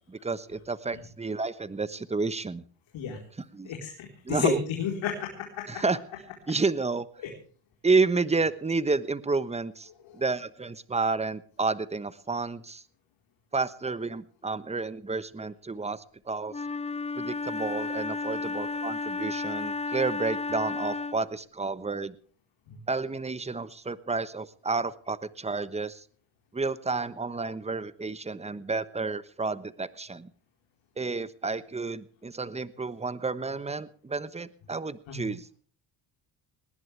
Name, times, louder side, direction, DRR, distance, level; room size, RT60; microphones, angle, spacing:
voice 1, 0.1-2.6 3.4-3.7 4.2-4.6 5.7-6.0 6.5-7.1 7.8-12.8 13.5-16.6 17.2-22.1 22.9-26.0 26.5-30.3 31.0-35.6, right 4 dB, 15° right, 15 dB, 1.1 m, -30 dB
voice 2, 3.6-5.8 7.2-7.3 22.7-22.8 35.1-35.3, left 7 dB, 70° left, 0 dB, 4.2 m, -32 dB
Wind instrument woodwind instrument, 16.5-21.3, left 3 dB, 15° left, 1.0 m, -33 dB
20.0 x 18.5 x 3.4 m, 0.41 s
supercardioid pair, 90°, 48 cm